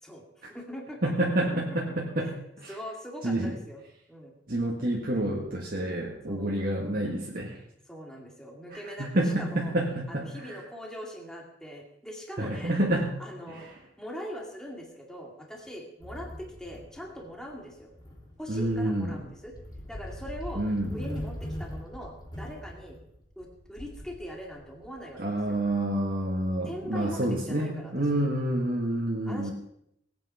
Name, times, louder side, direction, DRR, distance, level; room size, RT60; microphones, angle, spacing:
voice 1, 0.0-1.5 2.2-2.3 2.7-3.8 4.1-4.3 6.3-6.5 7.9-9.7 10.1-12.8 13.2-13.7 14.0-17.9 18.4-19.5 19.9-20.6 20.9-23.0 23.4-25.2 25.5-25.6 26.6-27.9 29.3-29.5, equal, 5° left, 0 dB, 2.1 m, -41 dB
voice 2, 1.0-2.3 2.6-2.7 3.2-3.5 4.5-7.6 8.7-10.6 12.4-13.1 13.5-13.7 18.5-19.2 20.5-20.9 25.2-29.5, right 1 dB, 50° right, -2 dB, 1.9 m, -28 dB
sound 1, 16.0-26.2, equal, 20° left, 3.5 m, -42 dB
18.0 x 9.0 x 5.7 m, 0.76 s
head